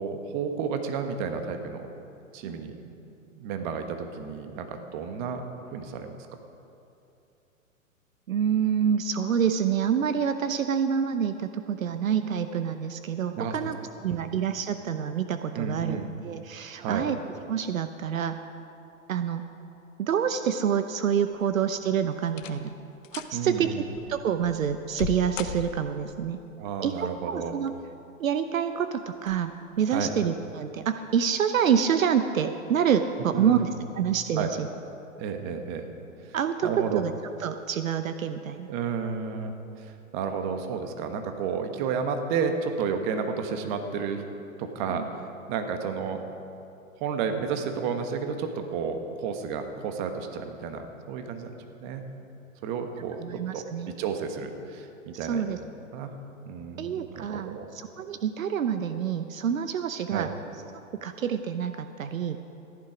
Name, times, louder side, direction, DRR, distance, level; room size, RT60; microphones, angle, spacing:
voice 1, 0.0-1.9 2.3-2.7 3.3-6.1 13.3-13.7 14.1-14.4 15.5-16.2 16.7-17.0 23.3-23.8 26.6-27.5 29.9-30.1 33.3-33.8 34.4-34.5 35.2-35.9 36.2-36.4 36.6-37.0 38.7-39.5 39.8-39.9 40.1-44.2 44.6-45.0 45.5-46.2 47.0-51.5 51.8-52.0 52.6-53.6 54.0-55.5 55.9-56.1 56.4-57.7 60.1-60.3, right 6 dB, 35° right, 6 dB, 1.3 m, -31 dB
voice 2, 8.3-13.8 14.0-17.2 17.5-18.4 19.1-19.4 20.0-22.7 23.1-23.8 24.1-26.4 26.8-27.7 28.2-33.7 33.9-34.7 36.3-37.1 37.4-38.7 44.9-45.1 53.2-53.9 55.1-55.6 56.8-60.3 61.0-62.4, right 8 dB, 75° right, 9 dB, 0.7 m, -27 dB
sound 1, 21.3-21.8 22.3-22.7 23.0-23.4 23.9-26.1 27.3-27.9 28.4-28.5 29.2-29.4 29.8-29.9, left 9 dB, 70° left, 1.0 m, -38 dB
14.5 x 11.0 x 5.0 m, 2.8 s
hypercardioid pair, 120°, 40 cm